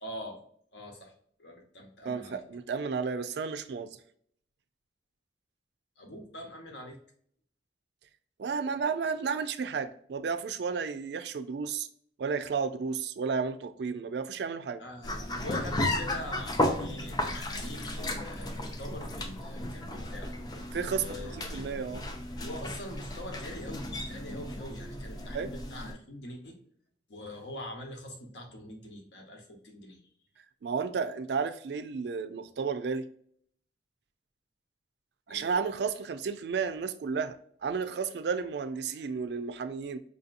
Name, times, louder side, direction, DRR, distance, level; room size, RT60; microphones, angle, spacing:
voice 1, 0.0-0.4 0.7-1.1 1.4-2.4 6.0-7.0 14.8-20.3 21.0-21.6 22.4-26.6 27.1-30.0 35.3-35.5, left 1 dB, 75° left, 1.0 m, -43 dB
voice 2, 2.0-3.9 8.4-11.9 12.2-14.8 20.7-22.0 25.3-25.5 30.6-33.0 35.3-40.0, right 5 dB, 65° right, 0.4 m, -32 dB
sound 1, 15.0-25.9, left 1 dB, 20° left, 0.5 m, -34 dB
5.0 x 2.7 x 2.5 m
head